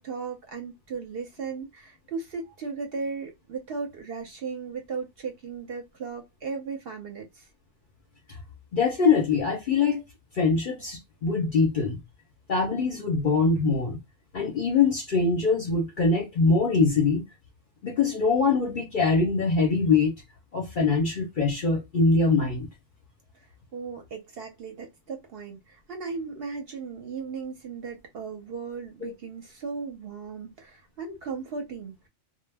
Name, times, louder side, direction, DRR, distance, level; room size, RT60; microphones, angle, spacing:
voice 1, 0.0-7.5 23.7-32.1, right 5 dB, 60° right, 0.7 m, -36 dB
voice 2, 8.7-10.0 10.3-12.0 12.5-14.0 14.3-17.2 17.8-20.1 20.5-22.7 29.0-29.1, left 4 dB, 55° left, 0.6 m, -23 dB
2.2 x 2.0 x 3.2 m
omnidirectional pair, 1.4 m